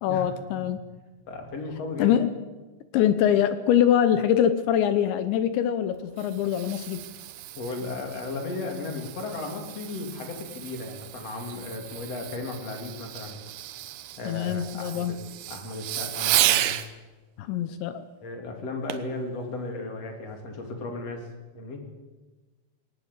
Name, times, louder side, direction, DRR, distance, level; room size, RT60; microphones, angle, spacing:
voice 1, 0.0-0.8 2.0-2.3 2.9-7.0 14.3-15.2 17.4-18.0, left 10 dB, 75° left, 12 dB, 2.9 m, -23 dB
voice 2, 1.3-2.2 7.5-13.4 14.2-15.2 15.5-16.7 18.2-21.3 21.5-21.8, left 3 dB, 35° left, 3 dB, 3.3 m, -35 dB
Fireworks, 5.9-16.9 18.9-19.2 19.8-19.9, right 13 dB, 75° right, 2.4 m, -32 dB
20.0 x 19.0 x 8.2 m, 1.2 s
omnidirectional pair, 5.7 m